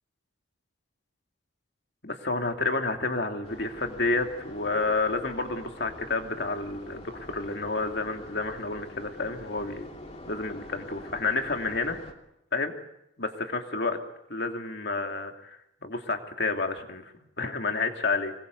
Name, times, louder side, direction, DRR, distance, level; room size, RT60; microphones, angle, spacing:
voice 1, 2.0-9.9 10.2-12.0 12.5-12.7 13.2-14.0 14.3-17.1 17.4-18.3, left 3 dB, 55° left, 4 dB, 2.7 m, -30 dB
sound 1, 3.4-12.1, left 1 dB, 30° left, 2.8 m, -45 dB
26.0 x 21.0 x 8.2 m, 0.82 s
head